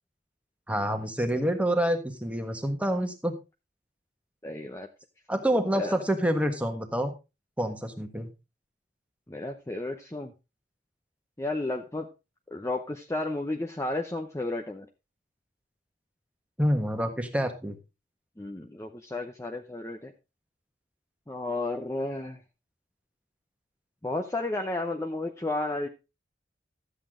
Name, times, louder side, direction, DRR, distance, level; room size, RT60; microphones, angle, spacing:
voice 1, 0.7-3.3 5.3-7.1 7.6-8.3 16.6-17.8, equal, 5° right, 6 dB, 1.4 m, -27 dB
voice 2, 4.4-4.9 5.7-6.0 9.3-10.3 11.4-12.1 12.5-14.9 18.4-20.1 21.3-22.4 24.0-25.9, left 2 dB, 15° left, 2 dB, 0.7 m, -32 dB
12.5 x 8.4 x 3.7 m, 0.28 s
head